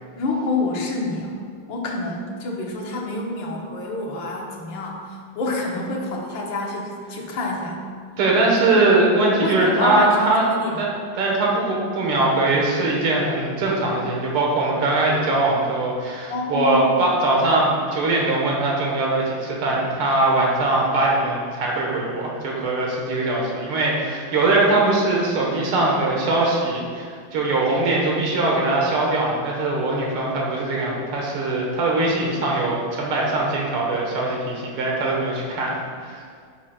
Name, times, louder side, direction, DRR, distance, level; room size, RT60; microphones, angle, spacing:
voice 1, 0.2-1.3 1.7-7.8 8.7-8.9 9.3-10.8 16.3-17.0, left 2 dB, 65° left, -1 dB, 1.8 m, -27 dB
voice 2, 8.2-10.4 10.8-10.9 11.1-36.2, right 2 dB, 90° right, -2 dB, 2.3 m, -21 dB
10.5 x 7.2 x 2.4 m, 2.1 s
omnidirectional pair, 2.3 m